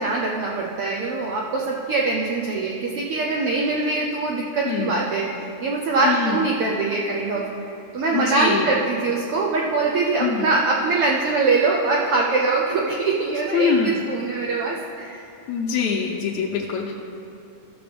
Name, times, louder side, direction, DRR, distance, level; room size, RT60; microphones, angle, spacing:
voice 1, 0.0-7.5 7.9-15.3, right 3 dB, 85° right, -2 dB, 1.3 m, -23 dB
voice 2, 4.7-5.0 6.0-6.5 8.1-8.7 10.2-10.5 13.5-14.0 15.5-16.9, left 6 dB, 80° left, -2 dB, 1.9 m, -24 dB
14.5 x 6.9 x 3.4 m, 2.8 s
omnidirectional pair, 3.4 m